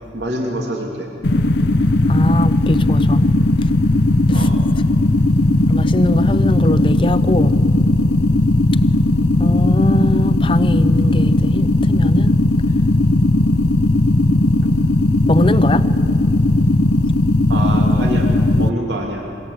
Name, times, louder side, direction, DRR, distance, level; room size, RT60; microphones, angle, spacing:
voice 1, 0.1-1.1 4.3-4.6 14.6-14.7 17.5-19.3, right 1 dB, 80° right, 2.8 m, -25 dB
sound 1, 1.2-18.7, left 2 dB, 75° left, 0.9 m, -16 dB
voice 2, 2.1-3.2 4.3-4.5 5.7-7.6 9.4-12.4 15.3-15.9, left 1 dB, 30° left, 0.8 m, -21 dB
27.0 x 23.0 x 8.3 m
head